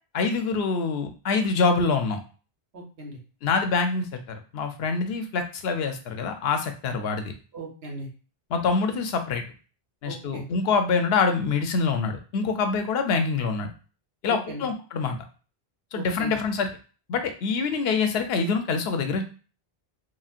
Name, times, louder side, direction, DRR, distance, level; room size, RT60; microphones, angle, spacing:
voice 1, 0.1-2.2 3.4-7.3 8.5-9.4 10.0-13.7 14.2-15.2 15.9-16.7 17.1-19.2, left 4 dB, 80° left, 6 dB, 0.8 m, -25 dB
voice 2, 2.7-3.2 7.5-8.1 10.1-10.4 14.2-14.7 15.9-16.4, right 1 dB, 85° right, 0 dB, 1.1 m, -38 dB
3.9 x 2.1 x 2.4 m, 0.36 s
omnidirectional pair, 1.0 m